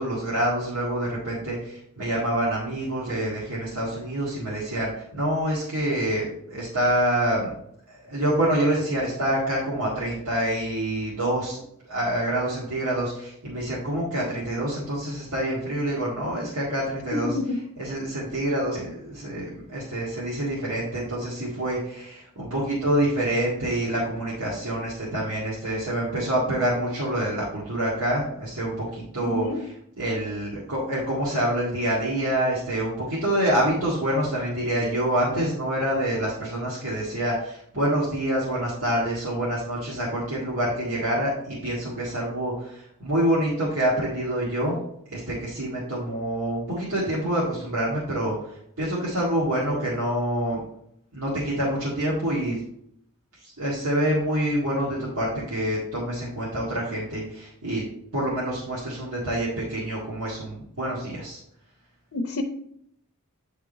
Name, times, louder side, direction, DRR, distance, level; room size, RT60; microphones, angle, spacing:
voice 1, 0.0-7.5 7.9-11.6 11.9-17.4 17.8-44.8 45.1-48.4 48.8-50.6 51.1-52.6 53.4-57.8 58.1-61.4, right 1 dB, 70° right, -7 dB, 1.9 m, -26 dB
voice 2, 17.1-17.6 29.2-29.6 62.1-62.4, left 2 dB, 75° left, 4 dB, 0.6 m, -28 dB
9.3 x 3.6 x 4.0 m, 0.73 s
head